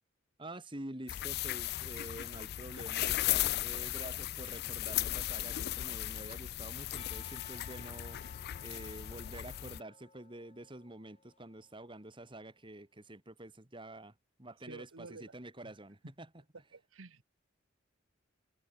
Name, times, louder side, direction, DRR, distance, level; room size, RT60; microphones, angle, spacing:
voice 1, 0.4-8.2 8.6-14.1 14.4-16.3, right 1 dB, 25° right, 2.4 m, -48 dB
sound 1, 1.1-9.8, left 14 dB, 55° left, 0.3 m, -36 dB
Percussion, 7.0-11.8, left 5 dB, 30° left, 3.1 m, -57 dB
voice 2, 14.7-15.3 15.6-15.7 16.7-17.2, right 3 dB, 85° right, 1.2 m, -50 dB
head